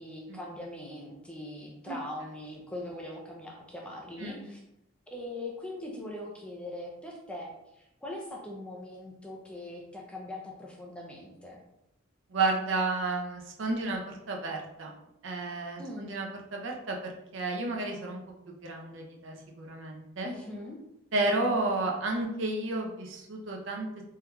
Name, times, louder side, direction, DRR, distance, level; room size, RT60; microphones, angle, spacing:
voice 1, 0.0-4.6 5.1-11.6 15.8-16.2 20.2-20.8, left 1 dB, 5° left, -1 dB, 0.4 m, -41 dB
voice 2, 12.3-14.9 15.2-18.2 18.6-20.3 21.1-23.9, right 2 dB, 65° right, 1 dB, 0.6 m, -32 dB
3.6 x 2.8 x 2.2 m, 0.85 s
head